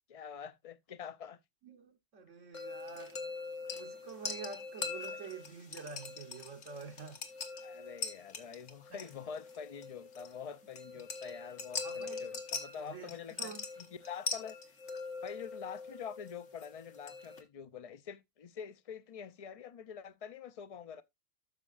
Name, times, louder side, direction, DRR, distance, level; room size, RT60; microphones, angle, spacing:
voice 1, 0.1-1.4 3.3-3.4 5.1-5.3 7.6-14.6 15.2-21.0, left 7 dB, 45° left, 0.5 m, -46 dB
voice 2, 1.6-3.2 3.7-7.2 8.9-9.0 11.8-12.2 12.8-13.6, right 5 dB, 75° right, 1.4 m, -47 dB
sound 1, 2.5-17.4, left 4 dB, 70° left, 1.6 m, -43 dB
12.5 x 6.2 x 2.4 m
omnidirectional pair, 1.3 m